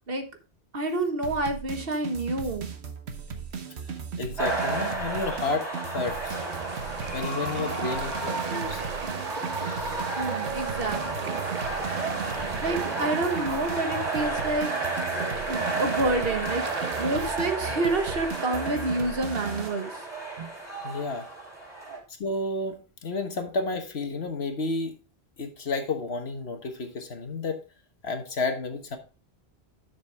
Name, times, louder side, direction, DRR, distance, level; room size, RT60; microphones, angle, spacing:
voice 1, 0.7-2.7 10.1-11.4 12.6-14.7 15.5-20.0 20.4-20.5 21.9-22.0, right 2 dB, 60° right, 6 dB, 1.5 m, -29 dB
sound 1, 1.2-19.7, right 6 dB, 85° right, 1.3 m, -37 dB
voice 2, 4.2-6.4 7.1-8.8 20.8-21.3 22.2-25.0 25.4-27.6 28.0-29.0, left 3 dB, 75° left, 6 dB, 1.6 m, -31 dB
sound 2, 4.4-22.0, right 2 dB, ahead, 4.5 m, -32 dB
sound 3, 6.3-17.3, right 6 dB, 45° right, 0.6 m, -37 dB
10.5 x 6.2 x 3.4 m, 0.34 s
omnidirectional pair, 1.1 m